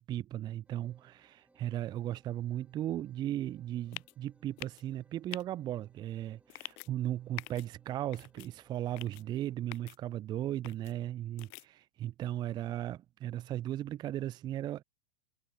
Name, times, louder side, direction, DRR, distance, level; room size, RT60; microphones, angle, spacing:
voice 1, 0.0-14.8, right 12 dB, 25° right, 0.5 m, -36 dB
sound 1, 0.6-9.6, right 2 dB, 5° right, 5.9 m, -69 dB
sound 2, 3.9-4.1 4.6-4.8 5.3-5.4 6.5-6.9 7.4-7.7 8.1-8.5 9.0-9.2 9.7-10.0 10.6-10.9 11.4-11.6, left 40 dB or more, 40° left, 0.4 m, -45 dB
supercardioid pair, 135°, 19 cm